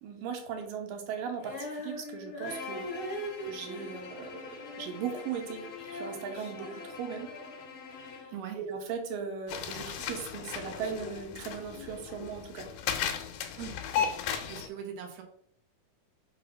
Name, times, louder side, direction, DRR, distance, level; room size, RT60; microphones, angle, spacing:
voice 1, 0.0-2.9 3.5-5.7 5.9-7.3 8.0-8.2 8.6-12.7, right 7 dB, 80° right, 4 dB, 2.5 m, -38 dB
Female singing, 1.4-5.2 5.5-7.6, equal, 45° left, 2.8 m, -41 dB
Bowed string instrument, 2.4-8.4, left 5 dB, 60° left, 2.4 m, -45 dB
voice 2, 8.3-8.6 13.6-14.1 14.5-15.2, right 8 dB, 60° right, 2 dB, 1.9 m, -41 dB
sound 1, 9.5-14.7, left 8 dB, 85° left, 2.4 m, -35 dB
5.7 x 3.8 x 5.3 m, 0.67 s
omnidirectional pair, 3.9 m